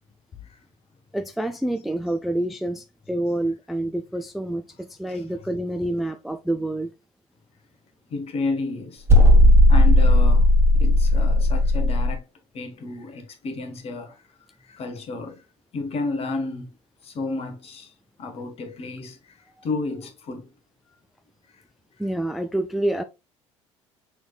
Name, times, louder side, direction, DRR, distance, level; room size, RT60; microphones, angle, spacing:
voice 1, 1.1-6.9 19.6-19.7 22.0-23.0, right 1 dB, ahead, 0.3 m, -27 dB
voice 2, 8.1-9.0 9.7-12.2 12.5-14.2 14.6-15.4 15.7-16.7 17.0-17.9 18.2-20.5 21.5-21.6, left 3 dB, 40° left, 1.1 m, -32 dB
sound 1, 9.1-12.2, left 1 dB, 15° right, 1.2 m, -15 dB
6.1 x 3.1 x 2.3 m
figure-of-eight pair, 60°, 15 cm